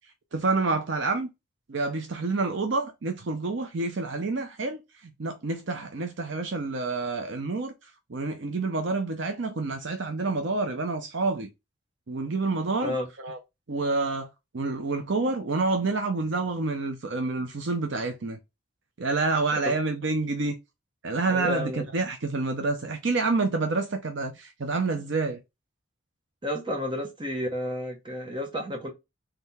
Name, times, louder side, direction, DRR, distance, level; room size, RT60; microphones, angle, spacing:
voice 1, 0.3-1.3 1.7-4.8 5.2-7.7 8.1-11.5 12.1-13.4 13.7-14.3 14.5-18.4 19.0-20.6 21.0-25.4, right 3 dB, 55° right, 0.6 m, -28 dB
voice 2, 21.3-21.9 26.4-28.9, left 1 dB, 20° right, 1.0 m, -31 dB
3.8 x 3.4 x 4.1 m
head